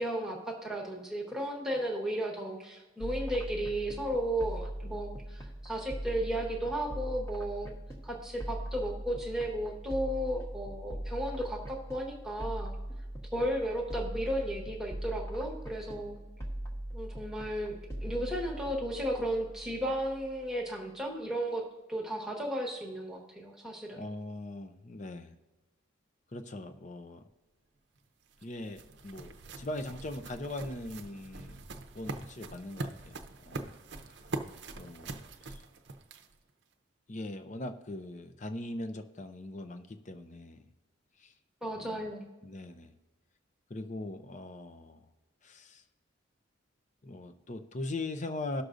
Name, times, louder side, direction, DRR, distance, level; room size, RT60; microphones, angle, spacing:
voice 1, 0.0-7.7 8.0-12.7 13.3-16.2 16.9-24.0 41.6-42.3, right 1 dB, 5° right, -2 dB, 1.3 m, -34 dB
sound 1, 3.0-20.6, right 1 dB, 15° left, 1.2 m, -41 dB
voice 2, 24.0-25.4 26.3-27.2 28.4-31.6 31.9-34.2 34.7-35.6 37.1-40.7 41.2-41.3 41.7-42.1 42.4-42.9 43.7-45.1 45.4-45.8 47.0-48.6, left 2 dB, 35° left, 8 dB, 0.6 m, -41 dB
sound 2, 27.9-36.5, right 2 dB, 60° right, 0.7 m, -43 dB
18.0 x 6.4 x 2.6 m, 1.2 s
head